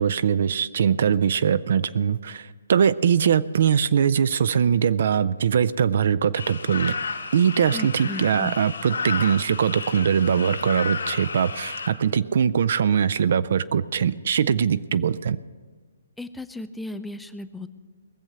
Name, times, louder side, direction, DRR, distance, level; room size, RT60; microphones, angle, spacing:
voice 1, 0.0-7.0 7.3-15.4, right 7 dB, 55° right, 14 dB, 0.3 m, -22 dB
sound 1, 6.3-11.9, left 4 dB, 75° left, 2.4 m, -32 dB
voice 2, 7.7-8.6 16.2-17.7, left 2 dB, 5° left, 11 dB, 0.5 m, -35 dB
20.0 x 7.3 x 6.7 m, 1.5 s
figure-of-eight pair, 130°, 0 cm